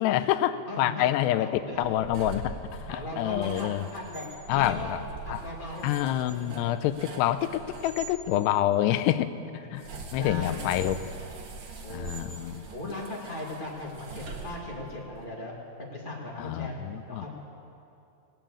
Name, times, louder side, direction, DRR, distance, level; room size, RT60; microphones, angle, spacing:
voice 1, 0.0-3.8 4.5-5.0 5.3-5.4 5.8-9.3 9.7-9.8 10.1-11.0 11.9-12.7 16.4-17.3, left 13 dB, 85° left, 11 dB, 2.7 m, -27 dB
voice 2, 0.7-1.9 2.2-2.4 2.9-5.9 6.3-6.7 9.2-9.5 9.9-11.0 11.8-15.5 15.8-17.3, left 2 dB, 70° left, -3 dB, 0.4 m, -38 dB
sound 1, 1.7-8.2 9.7-15.0, right 4 dB, 55° right, 2.3 m, -42 dB
18.5 x 9.2 x 8.5 m, 2.6 s
omnidirectional pair, 4.7 m